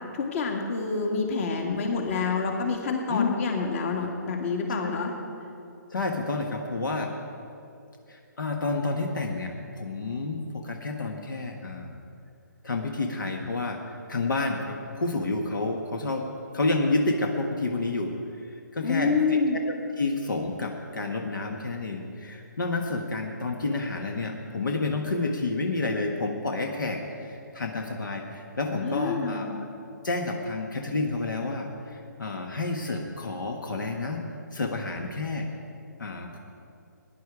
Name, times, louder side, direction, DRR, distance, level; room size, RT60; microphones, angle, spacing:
voice 1, 0.1-5.2 18.8-19.6 28.8-29.5, left 4 dB, 45° left, 2 dB, 2.1 m, -27 dB
voice 2, 5.9-7.1 8.1-12.0 12.6-13.8 14.1-16.2 16.5-18.1 18.4-19.4 19.7-29.7 30.0-34.2 34.5-35.5 36.0-36.4, left 3 dB, 80° left, 3 dB, 1.4 m, -30 dB
17.0 x 10.5 x 4.8 m, 2.5 s
hypercardioid pair, 145°, 10 cm